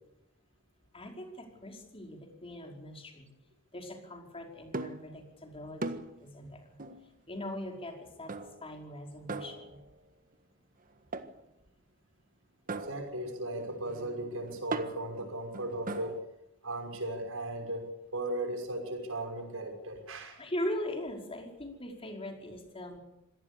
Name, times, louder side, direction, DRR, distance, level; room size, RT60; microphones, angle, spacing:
voice 1, 0.9-3.3 3.7-6.8 7.3-8.3 8.6-9.8 20.4-23.0, left 1 dB, 30° left, 2 dB, 5.3 m, -40 dB
sound 1, 4.7-5.1 5.8-6.3 6.8-7.1 8.3-8.8 9.3-10.0 11.1-11.5 12.7-16.2, right 3 dB, 45° right, 1.5 m, -40 dB
voice 2, 12.7-16.2 16.6-20.4, right 1 dB, 80° right, 5 dB, 6.0 m, -37 dB
26.0 x 18.5 x 7.0 m, 0.92 s
head